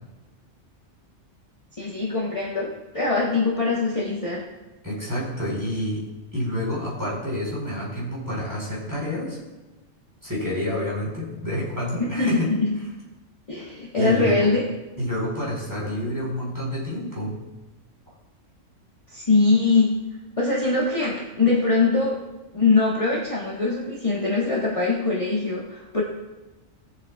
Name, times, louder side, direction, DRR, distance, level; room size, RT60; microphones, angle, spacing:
voice 1, 1.8-4.4 12.0-12.8 13.5-14.6 19.1-20.0 20.4-22.2 22.5-26.0, left 3 dB, 25° left, -6 dB, 1.5 m, -22 dB
voice 2, 4.8-6.1 6.3-9.4 10.2-12.5 14.0-14.5 15.0-17.4, left 1 dB, 15° right, -6 dB, 4.1 m, -28 dB
19.0 x 7.9 x 2.4 m, 1.1 s
omnidirectional pair, 1.3 m